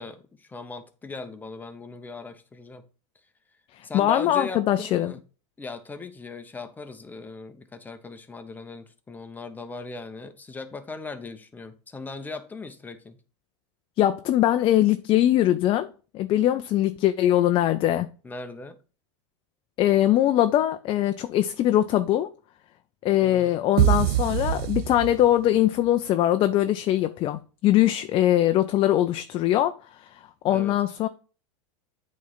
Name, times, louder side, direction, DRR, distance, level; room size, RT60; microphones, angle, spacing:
voice 1, 0.0-2.8 3.8-5.2 5.6-13.2 18.2-18.8 23.1-23.6 30.5-30.7, left 3 dB, 10° left, 0.8 m, -39 dB
voice 2, 3.8-5.1 14.0-15.9 16.1-18.1 19.8-22.3 23.0-30.1 30.4-31.1, left 13 dB, 35° left, 0.4 m, -22 dB
sound 1, 23.8-25.6, right 13 dB, 55° right, 0.5 m, -23 dB
8.3 x 3.2 x 3.9 m
supercardioid pair, 120°, 15 cm